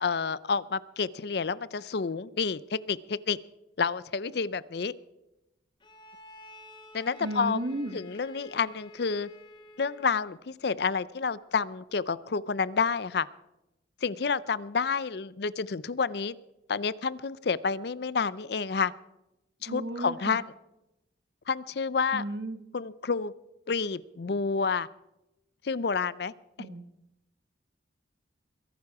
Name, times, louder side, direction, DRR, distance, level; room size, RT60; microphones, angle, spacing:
voice 1, 0.0-3.4 3.8-4.9 6.9-7.6 7.9-9.3 9.8-13.3 14.0-16.4 16.7-18.9 19.6-20.4 21.5-22.2 22.7-23.3 23.7-24.9 25.6-26.3 26.6-26.7, left 5 dB, 55° left, 19 dB, 0.5 m, -29 dB
Bowed string instrument, 5.8-10.4, left 2 dB, 25° left, 1.8 m, -51 dB
voice 2, 7.2-8.0 19.7-20.4 22.1-22.6 26.6-26.9, right 1 dB, 60° right, 10 dB, 1.3 m, -34 dB
22.5 x 11.5 x 4.8 m, 0.92 s
head